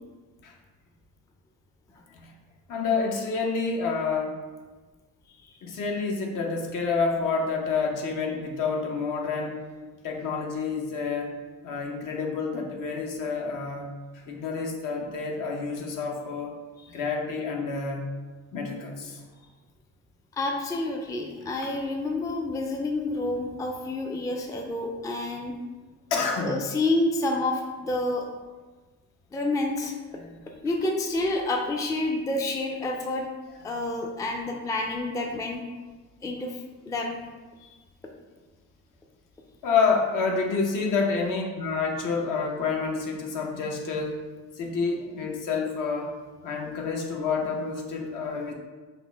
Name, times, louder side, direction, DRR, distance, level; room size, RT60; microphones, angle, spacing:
voice 1, 2.7-4.4 5.6-9.6 10.0-11.3 11.6-13.9 14.3-16.5 16.9-18.1 18.5-19.2 26.1-26.6 30.2-30.3 39.6-44.2 44.6-46.1 46.4-48.5, left 4 dB, 65° left, 1 dB, 0.9 m, -28 dB
voice 2, 20.3-25.5 26.4-28.3 29.3-29.9 30.6-33.3 33.6-35.6 36.2-36.5 36.9-37.2 37.6-37.7, left 2 dB, 10° left, 2 dB, 0.4 m, -28 dB
5.6 x 2.1 x 3.3 m, 1.3 s
cardioid pair, 95°, 34 cm